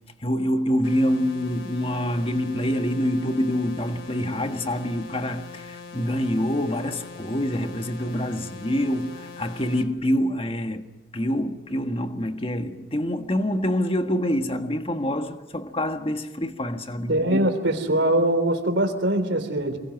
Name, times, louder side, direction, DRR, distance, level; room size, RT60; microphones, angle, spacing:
voice 1, 0.2-10.8 11.1-17.4, equal, 30° left, 1.6 m, -26 dB
sound 1, 0.8-9.8, left 4 dB, 90° left, 3.1 m, -42 dB
voice 2, 17.1-19.8, right 1 dB, 65° right, 3.6 m, -22 dB
27.0 x 22.5 x 9.4 m
head